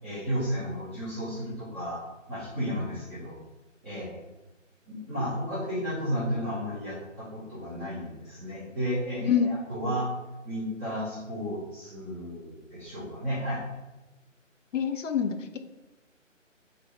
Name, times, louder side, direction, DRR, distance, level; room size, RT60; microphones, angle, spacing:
voice 1, 0.0-2.0 2.3-3.3 3.8-4.2 4.9-10.1 10.4-13.6, equal, 10° left, -14 dB, 0.7 m, -33 dB
voice 2, 14.7-15.6, left 8 dB, 70° left, 8 dB, 0.5 m, -26 dB
2.9 x 2.7 x 4.2 m, 1.1 s
figure-of-eight pair, 155°, 39 cm